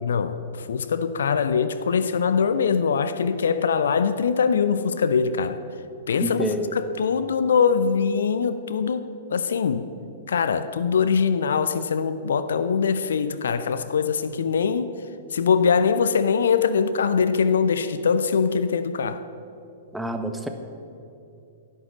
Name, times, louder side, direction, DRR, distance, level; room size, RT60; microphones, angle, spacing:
voice 1, 0.0-5.6 6.1-9.9 10.3-14.9 15.3-19.2, left 6 dB, 65° left, 12 dB, 0.6 m, -22 dB
voice 2, 6.2-6.7 19.9-20.5, right 1 dB, 5° right, 6 dB, 1.2 m, -27 dB
11.5 x 11.0 x 7.3 m, 2.7 s
figure-of-eight pair, 105°, 0 cm